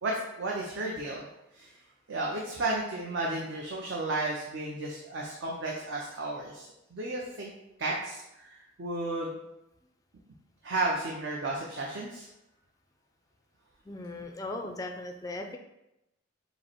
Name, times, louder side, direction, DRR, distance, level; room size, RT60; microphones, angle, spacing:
voice 1, 0.0-1.3 1.5-1.7 2.1-7.5 7.8-9.4 10.6-12.3, right 2 dB, 65° right, -2 dB, 0.6 m, -33 dB
voice 2, 13.9-15.6, left 2 dB, 15° left, 4 dB, 0.3 m, -38 dB
5.3 x 2.0 x 4.4 m, 0.89 s
head